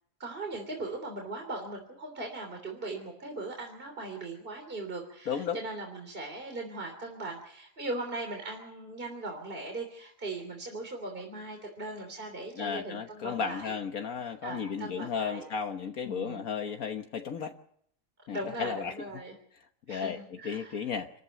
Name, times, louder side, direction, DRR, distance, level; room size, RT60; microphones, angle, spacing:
voice 1, 0.2-13.7 14.4-15.5 16.0-16.5 18.3-19.3 19.9-20.8, right 2 dB, 35° right, 3 dB, 3.5 m, -39 dB
voice 2, 5.3-5.6 12.5-17.5 18.3-18.9 19.9-21.1, left 6 dB, 70° left, 6 dB, 1.6 m, -34 dB
28.0 x 14.0 x 8.0 m, 0.69 s
omnidirectional pair, 1.6 m